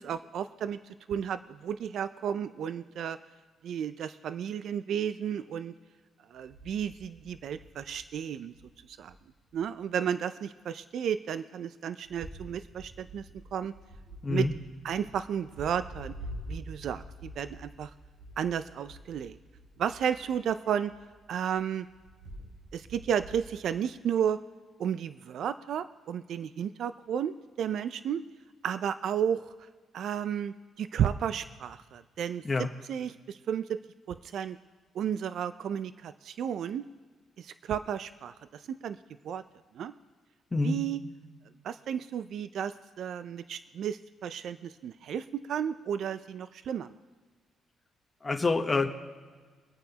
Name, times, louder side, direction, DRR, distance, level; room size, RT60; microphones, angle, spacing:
voice 1, 0.0-3.2 3.6-5.7 6.3-8.5 8.9-9.1 9.5-13.2 13.5-13.7 14.3-14.5 14.8-16.1 16.5-17.9 18.4-19.4 19.8-20.9 21.3-21.9 22.7-24.4 24.8-28.2 28.6-29.5 29.9-33.8 34.1-34.6 34.9-36.8 37.4-39.0 39.2-39.4 39.7-39.9 40.6-41.0 41.6-46.9, right 8 dB, 70° right, 12 dB, 0.4 m, -33 dB
sound 1, 6.4-8.2 8.5-9.1 9.5-9.6 12.0-20.5 20.8-23.8, right 1 dB, 90° right, 3.4 m, -47 dB
voice 2, 14.2-14.5 32.4-32.7 40.5-40.8 48.2-48.9, left 3 dB, 25° left, 3 dB, 0.9 m, -26 dB
24.0 x 8.9 x 2.9 m, 1.5 s
cardioid pair, 90°, 0 cm